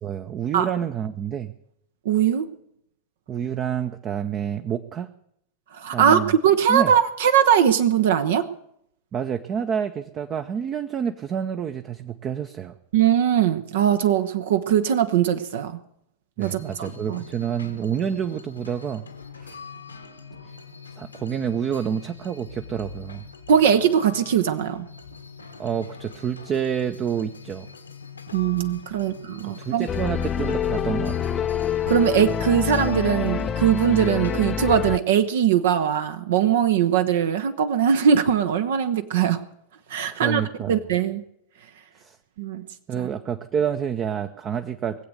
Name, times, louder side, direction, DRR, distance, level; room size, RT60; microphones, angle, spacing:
voice 1, 0.0-1.5 3.3-5.1 5.9-6.4 6.7-6.9 9.1-12.7 16.4-19.0 19.4-19.6 20.9-23.2 25.6-27.7 29.4-31.3 40.1-40.8 42.0-42.2 42.9-45.0, right 8 dB, 30° right, 8 dB, 0.7 m, -28 dB
voice 2, 2.0-2.5 5.7-8.5 12.9-15.8 16.4-17.2 23.5-24.9 28.3-29.9 31.8-39.4 39.9-40.4 40.7-41.2 42.4-42.7 43.0-43.1, right 8 dB, 60° right, 10 dB, 0.8 m, -21 dB
sound 1, 16.4-34.7, left 4 dB, 80° left, 1.3 m, -42 dB
sound 2, 29.9-35.0, left 8 dB, 25° left, 0.6 m, -26 dB
20.0 x 8.0 x 7.9 m, 0.73 s
figure-of-eight pair, 90°, 0 cm